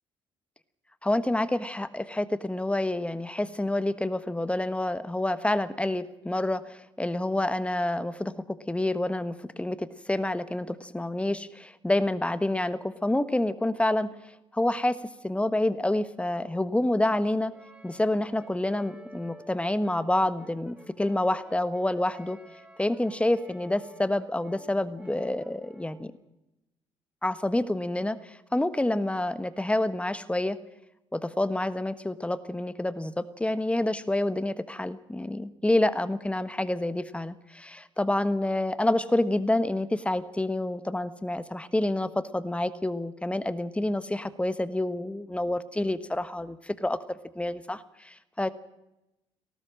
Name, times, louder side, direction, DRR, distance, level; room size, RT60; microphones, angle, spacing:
voice 1, 1.0-14.1 14.5-15.0 15.2-17.5 17.8-22.4 22.8-26.1 27.2-30.6 31.1-48.5, left 1 dB, 10° left, 14 dB, 1.3 m, -28 dB
Brass instrument, 17.5-26.1, right 1 dB, 10° right, 2.5 m, -52 dB
20.5 x 18.0 x 7.5 m, 0.91 s
figure-of-eight pair, 50°, 14 cm